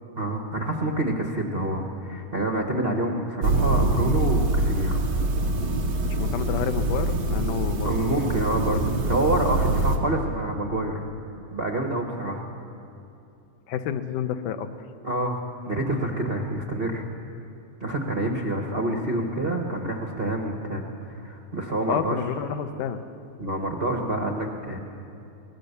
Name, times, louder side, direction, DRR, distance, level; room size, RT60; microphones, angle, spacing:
voice 1, 0.2-5.0 7.8-11.0 11.5-12.4 15.0-15.4 15.6-17.0 17.8-22.2 23.4-24.8, right 1 dB, 70° right, 2 dB, 0.5 m, -27 dB
sound 1, 3.4-10.0, right 2 dB, 45° right, 2.1 m, -24 dB
voice 2, 6.0-8.3 8.7-8.8 13.7-14.7 21.9-23.0, left 9 dB, 90° left, 8 dB, 2.5 m, -29 dB
23.5 x 19.0 x 6.8 m, 2.7 s
omnidirectional pair, 3.5 m